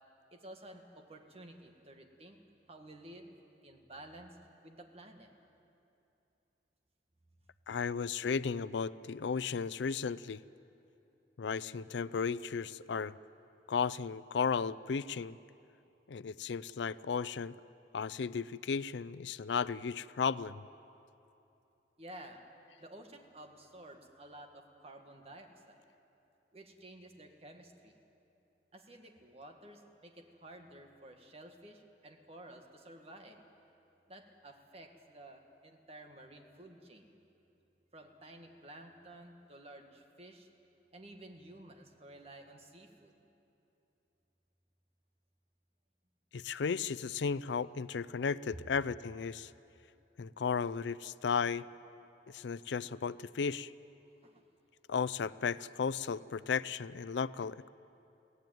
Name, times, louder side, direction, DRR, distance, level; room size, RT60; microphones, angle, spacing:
voice 1, 0.3-2.4 2.7-3.4 3.6-4.4 4.6-5.3 22.0-22.4 22.8-25.8 26.5-27.9 28.7-33.4 34.1-37.2 37.9-40.5 40.9-43.2 50.4-50.5 51.4-51.5 54.2-54.4, right 1 dB, 35° right, 4 dB, 1.8 m, -53 dB
voice 2, 7.7-10.4 11.4-13.1 13.7-15.4 16.1-17.5 17.9-20.6 46.3-49.5 50.2-51.7 52.3-53.7 54.9-57.7, left 6 dB, 80° left, 18 dB, 0.5 m, -34 dB
23.0 x 17.0 x 9.3 m, 2.8 s
head